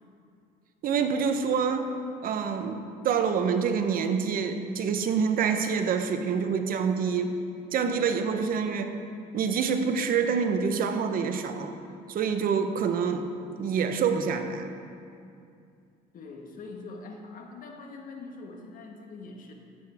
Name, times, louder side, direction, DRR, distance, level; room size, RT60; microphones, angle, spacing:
voice 1, 0.8-1.9 2.2-7.4 7.7-9.0 9.3-11.7 12.1-13.2 13.6-14.7, right 6 dB, 60° right, 7 dB, 0.8 m, -26 dB
voice 2, 16.1-19.5, left 3 dB, 55° left, 2 dB, 1.4 m, -43 dB
13.0 x 9.2 x 3.5 m, 2.4 s
cardioid pair, 110°, 17 cm